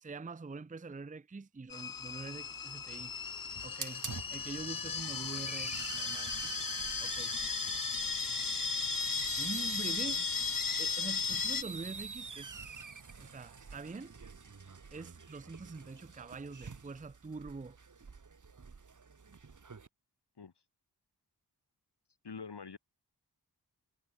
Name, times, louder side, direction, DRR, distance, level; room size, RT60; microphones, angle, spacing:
voice 1, 0.0-3.1 3.6-4.0 4.3-6.5 7.0-7.3 9.4-10.2 10.8-12.8 13.2-14.1 14.9-17.8, right 4 dB, 20° right, 0.6 m, -45 dB
sound 1, 1.7-11.6, left 6 dB, 55° left, 1.0 m, -36 dB
Hiss, 2.0-19.9, right 5 dB, 50° right, 1.5 m, -44 dB
voice 2, 22.2-22.8, left 5 dB, 80° left, 3.4 m, -45 dB
wide cardioid pair, 90°, 40 cm